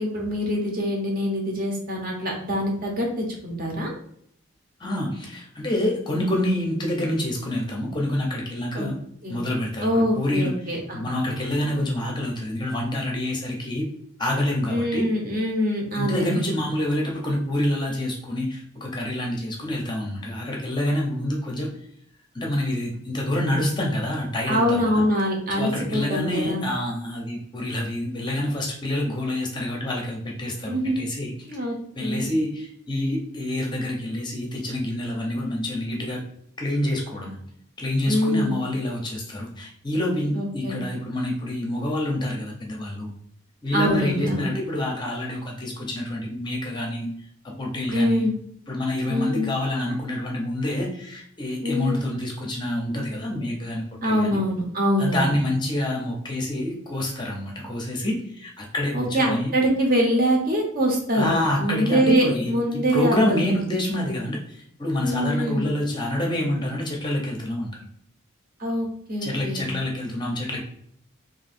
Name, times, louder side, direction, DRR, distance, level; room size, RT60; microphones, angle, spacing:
voice 1, 0.0-3.9 8.7-8.9 9.2-9.4 9.8-11.0 14.7-16.4 24.5-26.7 30.7-31.0 31.5-31.8 32.0-32.3 38.1-38.6 40.3-40.8 43.7-44.5 47.9-48.3 49.1-49.5 51.6-52.1 54.0-55.4 58.9-63.5 65.0-65.7 68.6-69.7, equal, 45° right, 0 dB, 0.9 m, -24 dB
voice 2, 4.8-9.0 9.3-10.5 10.9-13.9 14.2-15.1 15.9-21.7 22.3-25.0 25.5-31.6 32.0-36.2 36.6-37.4 37.8-43.1 43.6-47.1 47.4-48.2 48.7-54.4 55.0-59.5 61.1-67.8 69.2-70.6, left 1 dB, 20° left, 0 dB, 0.6 m, -27 dB
2.9 x 2.8 x 4.3 m, 0.68 s
head